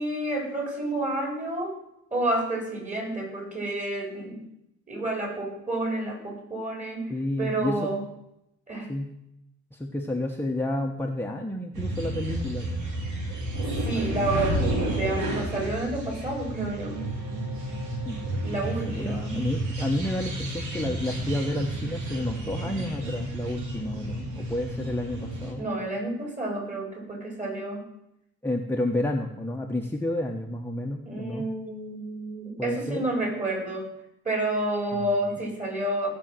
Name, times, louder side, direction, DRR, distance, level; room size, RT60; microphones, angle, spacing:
voice 1, 0.0-1.8 2.1-4.4 4.9-8.0 8.7-8.9 13.8-17.1 18.4-19.4 25.6-27.9 31.1-33.9 34.2-36.1, right 1 dB, 25° right, 1 dB, 5.3 m, -30 dB
voice 2, 7.1-7.9 8.9-9.1 9.7-12.8 13.9-14.2 14.5-14.7 18.0-18.4 18.8-25.7 28.4-31.4 32.6-33.0 34.9-35.4, left 1 dB, 5° left, 1 dB, 1.3 m, -31 dB
sound 1, 11.7-25.5, right 1 dB, 75° right, 3.1 m, -31 dB
16.5 x 5.6 x 7.8 m, 0.82 s
cardioid pair, 90°, 30 cm